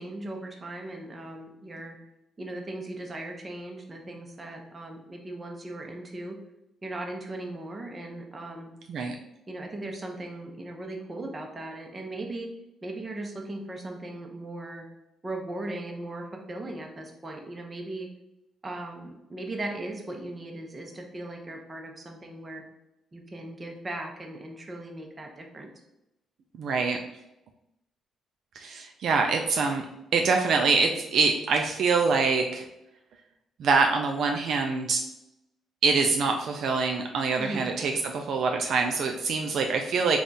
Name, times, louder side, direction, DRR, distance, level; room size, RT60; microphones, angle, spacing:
voice 1, 0.0-2.0 2.4-6.4 6.8-8.7 9.5-12.5 12.8-14.8 15.2-18.1 18.6-22.6 23.1-25.7 37.4-37.7, right 2 dB, 25° right, 2 dB, 0.8 m, -38 dB
voice 2, 26.6-27.0 28.6-29.8 30.1-32.7 33.6-35.0 35.8-40.2, right 4 dB, 65° right, 3 dB, 0.4 m, -25 dB
3.5 x 2.4 x 4.0 m, 0.88 s
cardioid pair, 90°, 0 cm